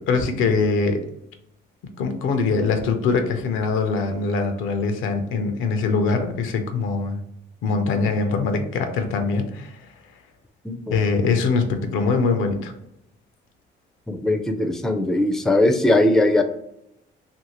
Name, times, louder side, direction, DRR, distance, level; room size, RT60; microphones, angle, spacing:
voice 1, 0.1-1.0 2.0-7.2 7.6-9.8 10.9-12.7, left 4 dB, 90° left, 6 dB, 0.5 m, -22 dB
voice 2, 10.6-11.0 14.1-16.4, left 1 dB, ahead, 5 dB, 0.4 m, -20 dB
2.8 x 2.6 x 2.9 m, 0.80 s
cardioid pair, 90°, 20 cm